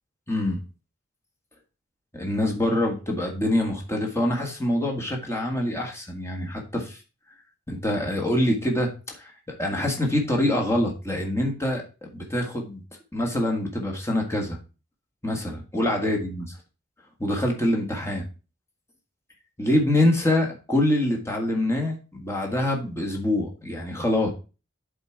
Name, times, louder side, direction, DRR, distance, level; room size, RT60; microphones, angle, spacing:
voice 1, 0.3-0.6 2.1-7.0 7.7-11.8 12.1-12.8 13.1-14.6 15.2-16.4 17.2-18.3 19.6-24.3, left 1 dB, 15° left, 0 dB, 1.6 m, -25 dB
7.9 x 3.8 x 4.6 m, 0.33 s
head